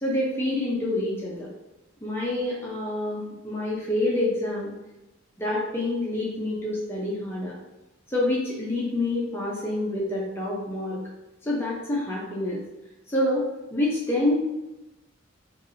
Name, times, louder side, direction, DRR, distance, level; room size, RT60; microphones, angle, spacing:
voice 1, 0.0-1.5 2.0-4.7 5.4-7.5 8.1-11.0 11.4-12.6 13.1-13.5 13.7-14.3, left 1 dB, 10° left, -6 dB, 0.7 m, -27 dB
4.6 x 2.7 x 2.6 m, 1.0 s
head